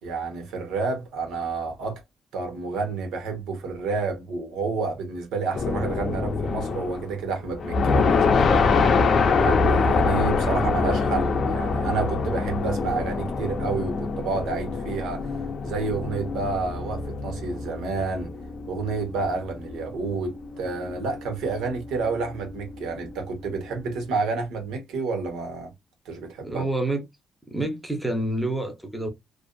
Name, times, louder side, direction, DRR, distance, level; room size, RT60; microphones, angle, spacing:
voice 1, 0.0-2.0 2.3-8.7 9.4-15.3 15.6-18.3 18.7-25.7 26.0-26.7, right 4 dB, 85° right, 1.0 m, -29 dB
sound 1, 5.5-7.1 7.5-23.9, left 4 dB, 55° left, 0.6 m, -25 dB
voice 2, 26.4-27.0 27.5-29.1, right 2 dB, 5° right, 0.7 m, -27 dB
2.5 x 2.4 x 2.2 m
cardioid pair, 90°, 0 cm